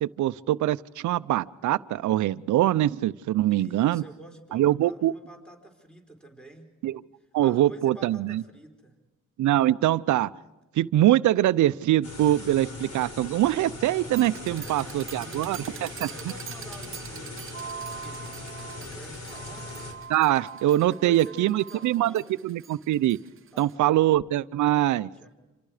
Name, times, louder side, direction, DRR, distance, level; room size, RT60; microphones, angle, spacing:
voice 1, 0.0-4.0 4.5-5.1 6.8-6.9 7.3-8.4 9.4-10.3 10.8-16.1 20.1-22.1 22.4-23.2 23.6-25.1, right 14 dB, 75° right, 16 dB, 0.7 m, -23 dB
voice 2, 3.5-6.7 7.2-9.0 14.5-18.5 18.7-19.7 20.9-22.2 23.5-23.8 25.2-25.3, right 2 dB, 5° left, 3 dB, 4.4 m, -48 dB
sound 1, 12.0-19.9, left 3 dB, 55° left, 6.5 m, -40 dB
sound 2, 14.1-23.7, right 8 dB, 45° right, 1.0 m, -43 dB
29.5 x 27.5 x 5.0 m, 1.0 s
cardioid pair, 90°, 30 cm